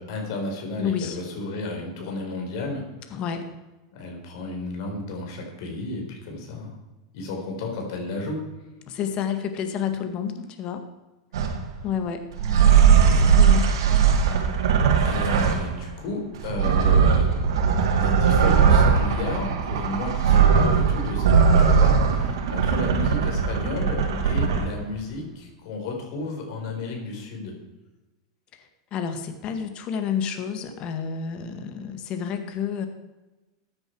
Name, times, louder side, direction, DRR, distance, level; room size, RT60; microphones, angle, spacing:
voice 1, 0.0-3.2 3.9-6.7 7.1-8.4 15.0-17.7 18.0-27.5, left 2 dB, 65° left, 1 dB, 4.3 m, -33 dB
voice 2, 0.8-1.2 3.1-3.4 8.9-10.8 11.8-12.2 13.4-13.7 28.9-32.9, left 8 dB, 40° left, 7 dB, 1.7 m, -29 dB
sound 1, 11.3-11.7 12.3-15.8 16.3-24.8, right 6 dB, 75° right, 2.3 m, -19 dB
15.0 x 9.7 x 4.7 m, 1.1 s
hypercardioid pair, 110°, 2 cm